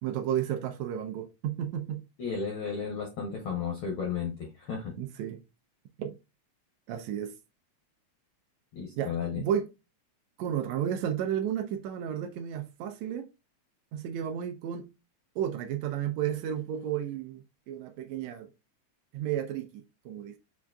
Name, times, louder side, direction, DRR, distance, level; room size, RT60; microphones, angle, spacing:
voice 1, 0.0-2.0 5.0-5.4 6.0-6.2 6.9-7.3 9.0-9.7 10.4-13.3 13.9-14.9 15.4-18.5 19.1-20.4, right 9 dB, 80° right, 1.7 m, -32 dB
voice 2, 2.2-4.9 8.7-9.4, left 6 dB, 80° left, 1.2 m, -33 dB
6.2 x 2.4 x 2.3 m
omnidirectional pair, 3.3 m